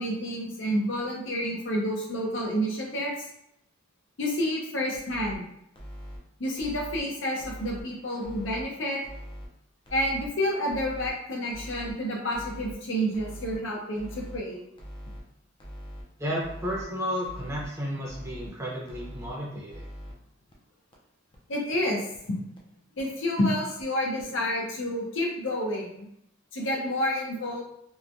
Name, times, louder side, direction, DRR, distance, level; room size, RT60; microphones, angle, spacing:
voice 1, 0.0-3.3 4.2-5.4 6.4-9.0 9.9-14.6 21.5-22.0 22.3-22.4 23.0-26.1 26.5-27.6, equal, 70° left, -1 dB, 0.7 m, -29 dB
sound 1, 4.9-5.4 5.8-6.2 6.6-7.0 7.4-7.8 8.2-8.6 9.0-9.5 9.9-10.3 10.7-11.1 11.5-11.9 12.3-12.7 13.1-13.6 14.0-14.4 14.8-15.2 15.6-16.0 16.4-16.9 17.2-17.7 18.1-18.5 18.9-19.3 19.7-20.1 20.5-20.6 20.9-21.0 21.3-21.4 21.8-21.9 22.1-22.2 22.6-22.7 23.0-23.1 23.4-23.5 23.8-23.9 24.2-24.3, equal, 25° left, 0.5 m, -42 dB
voice 2, 16.2-19.8, equal, 15° right, -4 dB, 0.7 m, -32 dB
3.1 x 2.2 x 2.5 m, 0.76 s
head